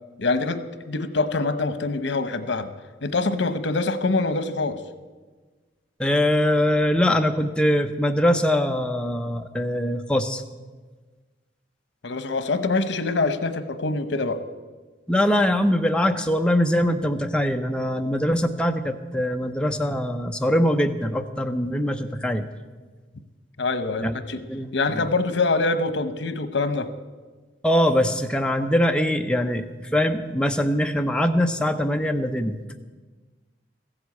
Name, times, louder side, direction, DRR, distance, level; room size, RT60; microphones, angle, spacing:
voice 1, 0.2-0.6 0.9-2.7 3.0-4.8 12.0-14.4 23.6-24.4 24.7-26.9, left 3 dB, 85° left, 11 dB, 0.9 m, -24 dB
voice 2, 6.0-10.4 15.1-22.5 24.0-24.2 24.5-25.0 27.6-32.6, equal, 5° left, 5 dB, 0.7 m, -22 dB
15.0 x 7.9 x 8.4 m, 1.3 s
head